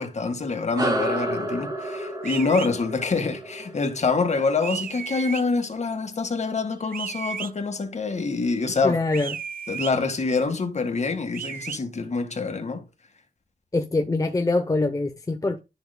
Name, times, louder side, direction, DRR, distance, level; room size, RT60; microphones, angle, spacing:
voice 1, 0.0-9.0 9.7-12.9, left 4 dB, 45° left, 1.9 m, -26 dB
sound 1, 0.8-5.6, right 1 dB, 25° right, 2.5 m, -31 dB
sound 2, 2.2-2.7 4.6-5.4 6.9-7.5 9.1-9.9 11.3-11.8, right 8 dB, 65° right, 0.5 m, -33 dB
voice 2, 8.8-9.4 13.7-15.6, left 2 dB, 20° left, 0.8 m, -24 dB
12.5 x 6.7 x 2.3 m
wide cardioid pair, 120°, 16 cm